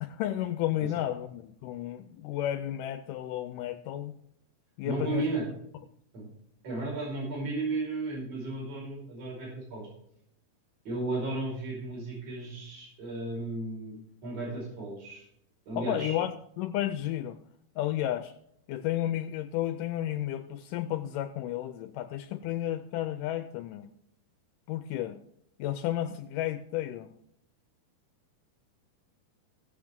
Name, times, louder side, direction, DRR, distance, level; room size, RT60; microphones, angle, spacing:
voice 1, 0.0-4.1 4.8-5.3 15.8-17.4 17.8-18.3 18.7-23.9 24.7-25.2 25.6-27.1, left 12 dB, 80° left, 10 dB, 2.0 m, -32 dB
voice 2, 4.8-5.5 6.1-6.3 6.6-9.9 10.8-14.0 14.2-15.3 15.7-16.2, right 2 dB, 45° right, -3 dB, 6.0 m, -34 dB
16.0 x 7.6 x 3.6 m, 0.72 s
omnidirectional pair, 4.0 m